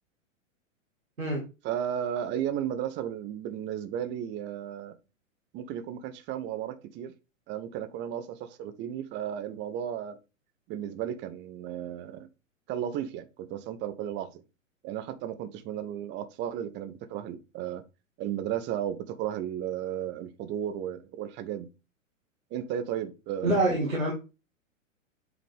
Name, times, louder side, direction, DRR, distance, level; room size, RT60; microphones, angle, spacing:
voice 1, 1.6-4.9 5.5-7.1 7.5-10.2 10.7-12.3 12.7-14.4 14.8-17.8 18.2-21.7 22.5-23.5, right 10 dB, 30° right, 0.7 m, -34 dB
voice 2, 23.4-24.1, right 2 dB, 90° right, 2.1 m, -25 dB
7.8 x 3.9 x 3.5 m
figure-of-eight pair, 105°, 40 cm